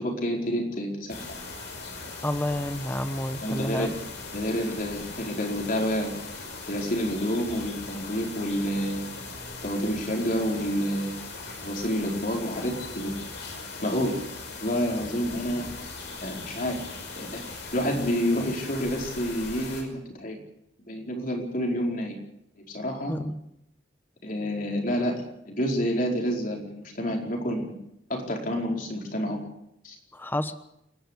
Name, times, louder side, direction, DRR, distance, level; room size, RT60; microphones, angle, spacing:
voice 1, 0.0-1.4 3.4-4.0 4.3-6.1 6.7-9.1 9.6-11.1 11.6-13.1 13.8-14.2 14.6-15.6 16.2-16.8 17.2-17.4 17.7-20.4 20.9-22.2 22.7-23.1 24.2-27.7 28.1-29.4 29.8-29.9, equal, 50° left, 1 dB, 4.8 m, -28 dB
sound 1, 1.1-19.8, left 3 dB, 65° left, 5.5 m, -39 dB
voice 2, 2.2-3.9 23.1-23.3 30.1-30.5, left 1 dB, 10° left, 10 dB, 1.1 m, -29 dB
29.5 x 11.5 x 8.2 m, 0.81 s
head